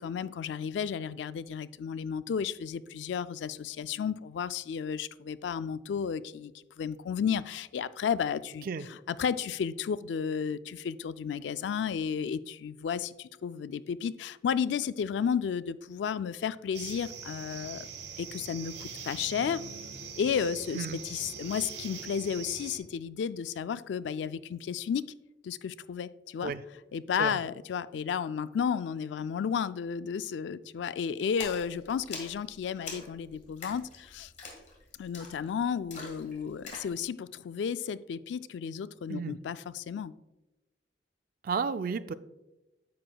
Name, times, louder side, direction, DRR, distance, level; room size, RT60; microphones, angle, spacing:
voice 1, 0.0-17.9 18.2-19.6 20.2-25.1 25.4-26.5 26.9-34.3 35.0-40.1, left 7 dB, 75° left, 16 dB, 0.3 m, -33 dB
sound 1, 16.7-22.8, right 6 dB, 70° right, 0.9 m, -43 dB
Splash splatter, 31.4-36.9, left 4 dB, 45° left, 1.8 m, -45 dB
voice 2, 41.4-42.1, right 5 dB, 55° right, 13 dB, 0.4 m, -32 dB
9.4 x 7.7 x 2.3 m, 0.99 s
head